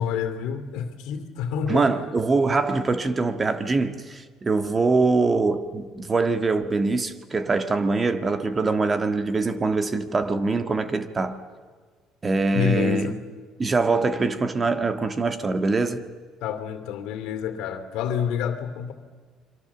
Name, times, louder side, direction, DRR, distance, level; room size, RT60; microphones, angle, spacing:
voice 1, 0.0-1.8 12.5-13.2 16.4-18.9, left 8 dB, 80° left, 2.5 m, -28 dB
voice 2, 1.7-11.4 12.2-13.1 13.6-16.1, right 3 dB, 25° right, 1.6 m, -23 dB
29.5 x 23.5 x 7.2 m
cardioid pair, 105°, 0 cm